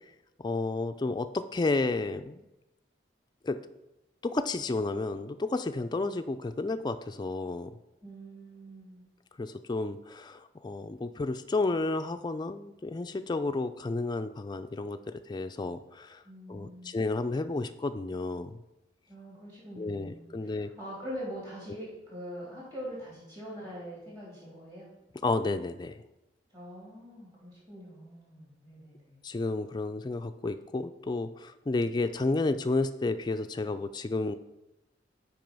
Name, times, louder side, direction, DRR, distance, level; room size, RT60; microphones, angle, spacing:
voice 1, 0.4-2.4 3.4-3.6 4.2-7.7 9.4-16.2 16.5-18.6 19.8-20.7 25.2-26.0 29.2-34.4, left 3 dB, 20° left, 9 dB, 0.3 m, -31 dB
voice 2, 8.0-9.1 16.2-16.9 19.1-24.9 26.5-29.2, equal, 25° right, -6 dB, 3.1 m, -43 dB
7.7 x 4.8 x 5.3 m, 0.94 s
head